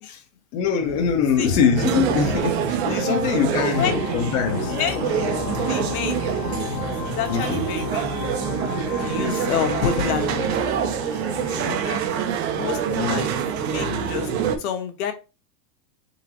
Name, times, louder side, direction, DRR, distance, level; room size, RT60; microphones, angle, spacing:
voice 1, 0.5-4.8 7.3-7.6 12.9-13.3, left 6 dB, 30° left, 0.6 m, -23 dB
sound 1, 0.8-14.6, left 2 dB, ahead, 0.8 m, -35 dB
sound 2, 1.8-14.6, right 9 dB, 40° right, 0.7 m, -26 dB
voice 2, 3.6-4.0 4.6-5.3 5.7-6.3 6.7-6.8 7.0-8.2 9.0-12.0 12.5-12.8 13.1-13.4 13.7-15.1, left 8 dB, 60° left, 1.2 m, -29 dB
sound 3, 3.7-10.2, left 11 dB, 85° left, 0.7 m, -34 dB
3.9 x 3.6 x 2.9 m
supercardioid pair, 145°, 48 cm